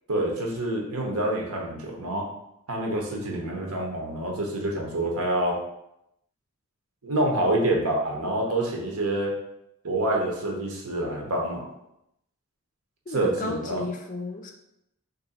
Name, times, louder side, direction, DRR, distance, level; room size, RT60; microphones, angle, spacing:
voice 1, 0.1-2.3 2.7-5.6 7.0-9.3 9.8-11.6 13.1-13.8, right 1 dB, 80° right, -1 dB, 0.9 m, -27 dB
voice 2, 13.1-14.5, left 2 dB, 35° left, 3 dB, 0.4 m, -33 dB
3.0 x 2.7 x 4.1 m, 0.82 s
head